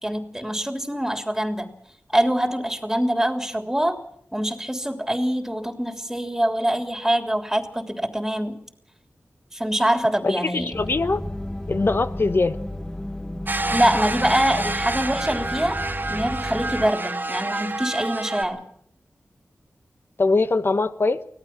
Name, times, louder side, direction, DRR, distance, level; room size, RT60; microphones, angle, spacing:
voice 1, 0.0-1.7 2.1-4.0 4.3-8.6 9.5-10.7 13.7-15.8 16.1-18.6, right 1 dB, 5° right, 4 dB, 3.4 m, -24 dB
voice 2, 10.2-11.2 11.7-12.6 20.2-21.2, left 3 dB, 50° left, 11 dB, 1.4 m, -22 dB
sound 1, 10.7-16.9, left 1 dB, 15° left, 1.6 m, -33 dB
sound 2, 13.5-18.5, right 2 dB, 40° right, 2.4 m, -28 dB
25.0 x 18.0 x 6.1 m, 0.68 s
wide cardioid pair, 65°, 5 cm